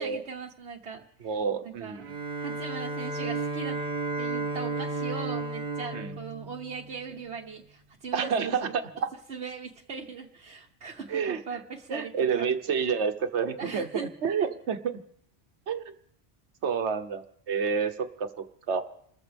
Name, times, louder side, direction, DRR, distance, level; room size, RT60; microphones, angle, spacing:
voice 1, 0.0-1.3 1.6-2.0 2.4-3.8 4.2-8.6 9.3-12.1 12.4-12.5 13.6-14.1 14.4-14.5, right 5 dB, 75° right, -1 dB, 1.3 m, -39 dB
voice 2, 1.2-2.1 5.9-6.1 8.1-8.8 11.1-11.4 11.9-15.0 15.7-15.8 16.6-17.2 17.5-18.3 18.7-18.8, right 6 dB, 90° right, 8 dB, 1.3 m, -29 dB
Bowed string instrument, 2.0-7.2, right 3 dB, 50° right, 1.2 m, -33 dB
29.0 x 14.0 x 3.4 m, 0.66 s
omnidirectional pair, 1.1 m